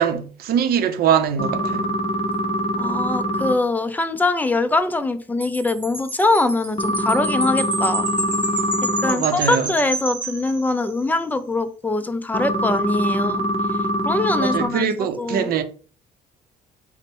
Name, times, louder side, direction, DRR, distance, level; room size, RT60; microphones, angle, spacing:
voice 1, 0.0-1.9 9.0-9.7 14.4-15.6, right 8 dB, 65° right, 0.6 m, -22 dB
sound 1, 1.4-3.5 6.8-9.1 12.3-14.7, equal, 30° left, 0.7 m, -23 dB
voice 2, 2.8-8.0 9.0-13.4 14.1-15.6, left 2 dB, 10° left, 0.4 m, -23 dB
Wind chime, 5.4-11.1, right 1 dB, 5° right, 1.3 m, -30 dB
4.1 x 2.1 x 4.4 m
cardioid pair, 110°, 17 cm